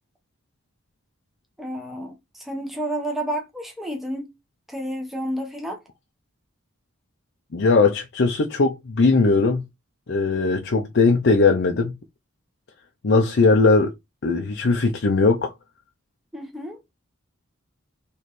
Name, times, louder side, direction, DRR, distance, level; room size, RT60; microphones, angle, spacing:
voice 1, 1.6-4.3 4.7-5.8 16.3-16.8, right 1 dB, ahead, 0.9 m, -30 dB
voice 2, 7.5-9.6 10.1-11.9 13.0-13.9 14.2-15.5, left 3 dB, 55° left, 0.5 m, -19 dB
4.1 x 3.1 x 3.1 m
head